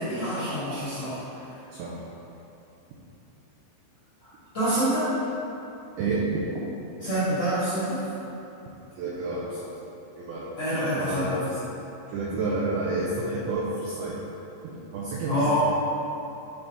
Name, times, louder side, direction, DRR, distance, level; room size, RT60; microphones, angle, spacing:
voice 1, 0.0-1.5 4.2-4.3 4.5-5.1 7.0-8.0 10.6-11.4 15.3-15.6, equal, 60° left, -13 dB, 1.6 m, -27 dB
voice 2, 6.0-6.4 9.0-9.7 10.2-11.6 12.1-14.2 14.9-15.6, right 3 dB, 85° right, -5 dB, 2.2 m, -29 dB
9.2 x 4.0 x 3.5 m, 2.9 s
omnidirectional pair, 5.3 m